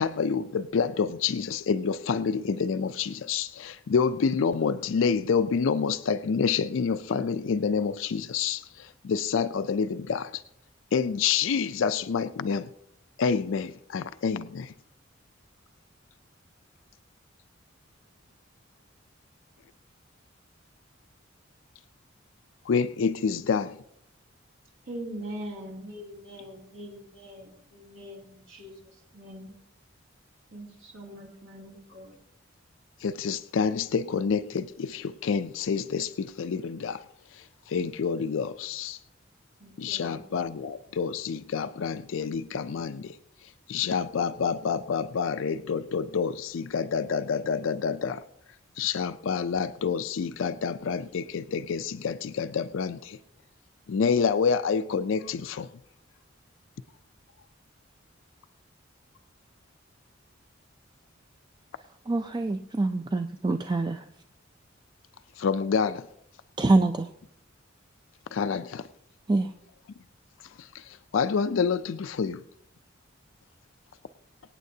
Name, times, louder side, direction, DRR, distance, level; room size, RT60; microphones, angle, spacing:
voice 1, 0.0-10.4 10.9-12.7 13.2-14.7 22.7-23.8 33.0-37.0 37.3-39.0 39.8-43.2 43.7-48.2 48.8-53.2 53.9-55.7 65.4-66.0 68.3-68.8 70.6-72.4, left 6 dB, 75° left, 11 dB, 0.4 m, -28 dB
voice 2, 24.9-28.7 29.1-29.5 30.5-32.2 39.6-40.3, equal, 75° right, -2 dB, 2.7 m, -42 dB
voice 3, 62.1-64.1 66.6-67.1 69.3-69.5, right 2 dB, 20° right, 7 dB, 0.4 m, -25 dB
23.5 x 9.1 x 2.7 m, 0.73 s
head